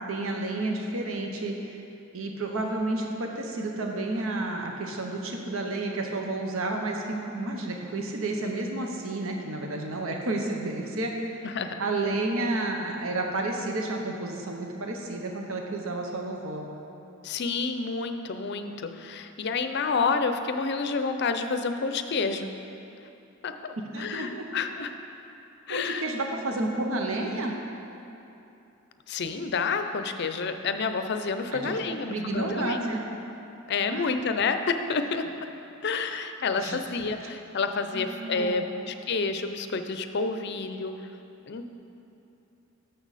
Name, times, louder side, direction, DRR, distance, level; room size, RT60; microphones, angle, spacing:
voice 1, 0.1-1.8 2.1-11.4 11.8-16.6 23.8-24.5 25.7-27.5 31.5-31.7 32.1-33.0 33.9-34.1 35.0-35.1 36.6-36.8 37.9-38.6, right 2 dB, 75° right, 1 dB, 0.9 m, -31 dB
voice 2, 11.4-11.8 17.2-22.5 23.4-24.9 25.7-26.0 29.1-33.0 33.7-35.3 35.8-40.9 41.5-41.6, left 4 dB, 50° left, 8 dB, 0.5 m, -29 dB
12.5 x 6.8 x 4.1 m, 2.8 s
head